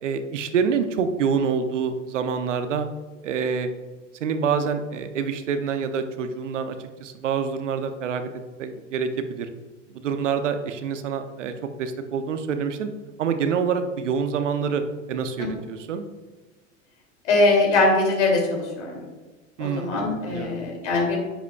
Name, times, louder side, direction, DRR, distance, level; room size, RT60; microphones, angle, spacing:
voice 1, 0.0-2.9 3.2-3.7 4.2-8.3 8.6-9.5 9.9-11.5 11.8-12.9 13.2-14.8 15.1-16.0 19.6-20.6, right 6 dB, 70° right, 8 dB, 0.9 m, -26 dB
voice 2, 17.2-19.0 19.6-21.2, left 2 dB, 65° left, -1 dB, 2.8 m, -22 dB
10.0 x 8.1 x 2.4 m, 1.2 s
figure-of-eight pair, 80°, 38 cm